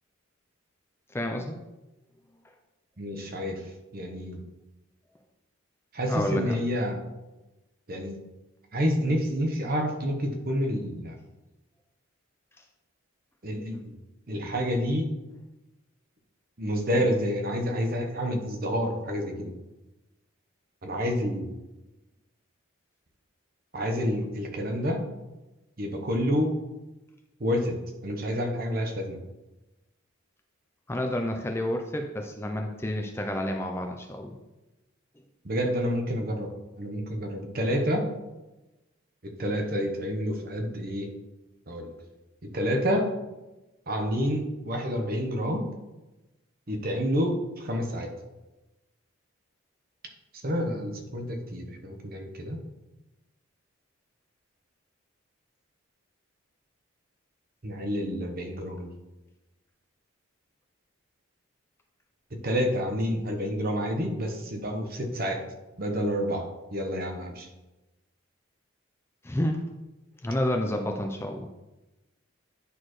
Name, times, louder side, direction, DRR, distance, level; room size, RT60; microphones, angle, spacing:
voice 1, 1.1-1.6 6.1-6.6 30.9-34.4 69.2-69.6 70.2-71.5, left 1 dB, 10° left, 3 dB, 0.4 m, -30 dB
voice 2, 3.0-3.6 3.9-4.4 5.9-7.0 7.9-8.2 8.7-11.2 13.4-13.8 14.3-15.1 16.6-19.5 20.8-21.5 23.7-25.0 25.8-26.5 27.4-27.8 28.0-29.2 35.4-36.5 36.8-38.1 39.4-41.1 41.7-41.9 42.5-43.1 43.9-45.7 46.7-48.1 50.4-52.6 57.6-58.9 62.4-65.4 65.8-66.4 66.7-67.5, equal, 45° right, 3 dB, 1.0 m, -28 dB
9.6 x 4.3 x 3.1 m, 1.0 s
head